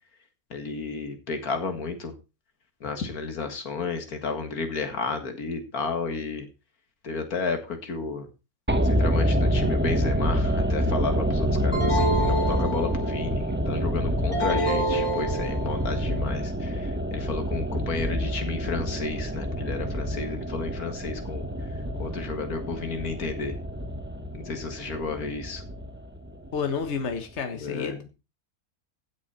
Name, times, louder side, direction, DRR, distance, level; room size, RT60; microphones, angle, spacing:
voice 1, 0.5-2.1 2.8-6.5 7.0-8.3 8.8-21.5 22.0-23.6 24.3-25.6 27.5-28.1, left 4 dB, 80° left, 7 dB, 2.3 m, -32 dB
sound 1, 8.7-26.9 27.1-27.2, equal, 10° right, 0.7 m, -27 dB
sound 2, 11.7-13.3 14.3-15.9, right 1 dB, 20° left, 3.2 m, -28 dB
voice 2, 26.5-28.1, left 5 dB, 50° left, 6 dB, 1.7 m, -30 dB
15.5 x 6.4 x 4.3 m, 0.30 s
omnidirectional pair, 1.5 m